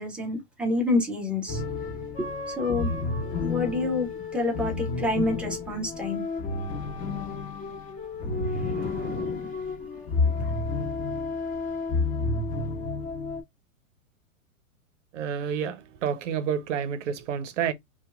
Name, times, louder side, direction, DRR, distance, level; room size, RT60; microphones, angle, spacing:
voice 1, 0.0-1.6 2.2-3.1 3.4-4.1 4.3-6.2 8.2-9.5 10.2-10.8, left 2 dB, 5° right, 0.4 m, -29 dB
sound 1, 1.5-13.4, left 3 dB, 35° left, 1.4 m, -30 dB
voice 2, 15.1-17.7, right 8 dB, 60° right, 0.6 m, -29 dB
2.8 x 2.2 x 2.4 m
hypercardioid pair, 115°, 43 cm